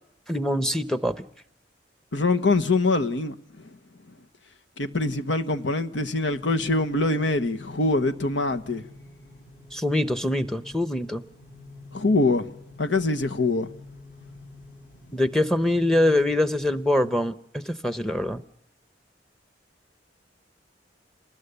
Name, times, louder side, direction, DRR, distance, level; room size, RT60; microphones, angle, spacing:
voice 1, 0.3-1.3 9.7-11.2 15.1-18.4, left 1 dB, 5° left, 0.8 m, -24 dB
voice 2, 2.1-3.3 4.8-8.8 11.9-12.5 12.8-13.7, left 2 dB, 90° left, 1.3 m, -24 dB
sound 1, 6.3-17.2, left 2 dB, 60° left, 7.5 m, -46 dB
27.5 x 20.0 x 6.8 m
head